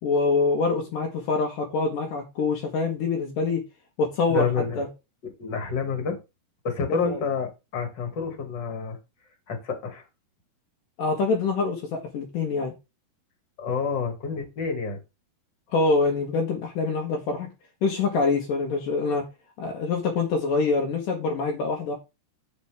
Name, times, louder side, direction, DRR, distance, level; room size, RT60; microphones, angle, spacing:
voice 1, 0.0-3.6 4.0-4.5 4.8-4.9 7.1-7.2 11.0-12.7 15.7-17.5 17.8-19.2 19.6-22.0, left 4 dB, 65° left, 2.9 m, -25 dB
voice 2, 4.3-4.8 5.2-6.2 6.6-9.0 9.5-10.0 13.6-15.0, left 5 dB, 30° left, 2.6 m, -28 dB
8.8 x 8.1 x 3.6 m
omnidirectional pair, 4.4 m